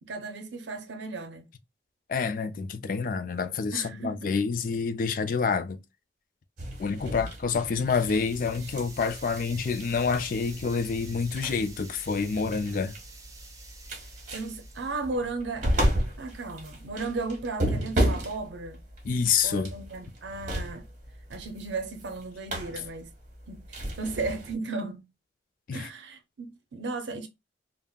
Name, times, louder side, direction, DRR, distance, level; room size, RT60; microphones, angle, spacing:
voice 1, 0.0-1.5 3.7-4.3 6.9-7.3 14.3-15.7 16.2-18.8 19.4-20.9 21.3-23.1 23.5-25.0 25.7-27.3, right 3 dB, 85° right, 0.5 m, -35 dB
voice 2, 2.1-5.8 6.8-12.9 19.0-19.7 25.7-25.9, left 5 dB, 50° left, 0.3 m, -28 dB
sound 1, 6.6-24.5, equal, 45° right, 1.0 m, -34 dB
sound 2, 7.9-15.1, right 3 dB, 20° right, 0.5 m, -49 dB
3.5 x 2.0 x 2.2 m
head